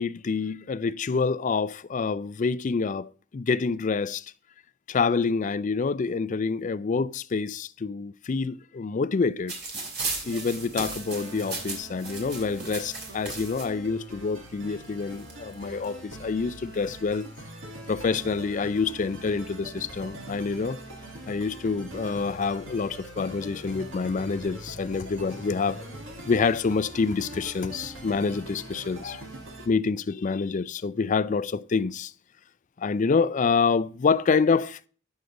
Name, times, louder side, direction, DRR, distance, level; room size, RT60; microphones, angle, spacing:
voice 1, 0.0-4.3 4.9-9.5 10.3-17.3 17.9-20.8 21.3-25.8 26.3-29.3 29.7-32.1 32.8-34.9, left 4 dB, 40° left, 0.4 m, -27 dB
sound 1, 9.5-13.6 14.6-14.7 14.9-15.9 16.6-16.9, right 3 dB, 55° right, 3.4 m, -36 dB
sound 2, 10.2-29.7, right 1 dB, 90° right, 2.1 m, -42 dB
9.3 x 6.5 x 3.7 m
head